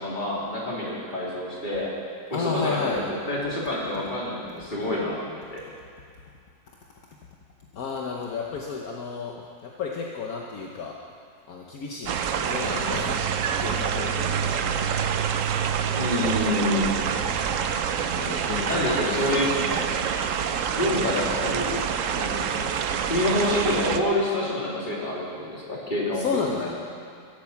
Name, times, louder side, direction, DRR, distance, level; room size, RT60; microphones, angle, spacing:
voice 1, 0.0-1.9 2.3-5.6 15.9-17.0 18.7-19.5 20.8-21.9 22.1-22.7 23.1-26.2 26.5-26.7, left 1 dB, 30° left, -5 dB, 3.1 m, -27 dB
voice 2, 2.3-3.0 7.7-11.0 11.5-13.2 13.6-14.8 15.3-15.5 18.1-19.3 19.7-19.9 26.1-26.7, left 5 dB, 65° left, -1 dB, 1.4 m, -32 dB
sound 1, 12.1-24.0, right 7 dB, 60° right, 1.0 m, -26 dB
17.0 x 8.5 x 7.2 m, 2.4 s
omnidirectional pair, 1.7 m